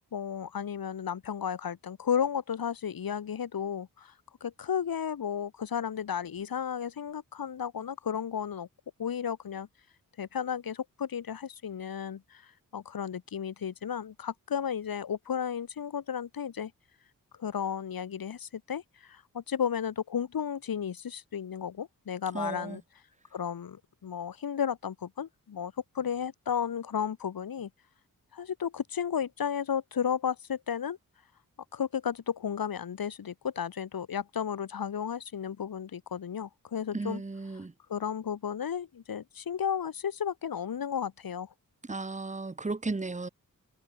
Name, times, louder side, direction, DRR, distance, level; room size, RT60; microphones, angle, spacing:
voice 1, 0.1-4.1 4.4-8.7 9.0-9.7 10.2-16.7 17.4-22.8 23.3-27.7 28.3-31.0 31.7-37.2 37.9-41.5, left 8 dB, 90° left, 4.0 m, -33 dB
voice 2, 22.3-22.8 36.9-37.7 41.8-43.3, right 3 dB, 20° right, 1.5 m, -35 dB
wide cardioid pair, 130°, 34 cm